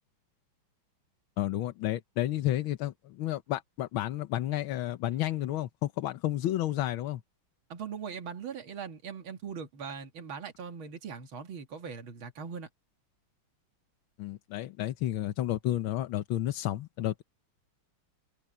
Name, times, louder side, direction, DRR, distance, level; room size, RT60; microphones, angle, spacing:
voice 1, 1.4-7.2 14.2-17.2, left 13 dB, 75° left, 1.6 m, -31 dB
voice 2, 7.7-12.7, right 6 dB, 70° right, 2.7 m, -40 dB
omnidirectional pair, 2.3 m